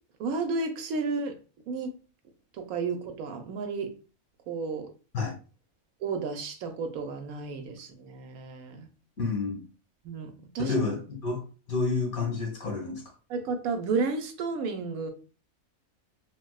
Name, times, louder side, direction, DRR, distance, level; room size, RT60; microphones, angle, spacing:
voice 1, 0.2-1.3 1.7-2.0 2.5-3.9 4.5-4.9 6.0-8.9 10.0-10.7 13.3-15.1, right 4 dB, 80° right, 1.1 m, -32 dB
voice 2, 9.2-9.6 10.6-13.0, left 4 dB, 80° left, 1.8 m, -29 dB
3.9 x 2.3 x 2.2 m
omnidirectional pair, 1.5 m